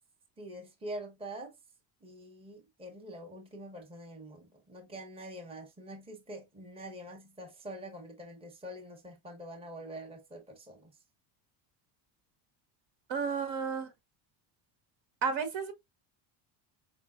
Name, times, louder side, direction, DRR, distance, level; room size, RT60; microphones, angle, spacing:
voice 1, 0.4-1.5 2.0-10.9, right 1 dB, 10° right, 1.0 m, -45 dB
voice 2, 13.1-13.9 15.2-15.7, right 6 dB, 60° right, 1.5 m, -32 dB
5.1 x 3.3 x 2.4 m
cardioid pair, 140°, 47 cm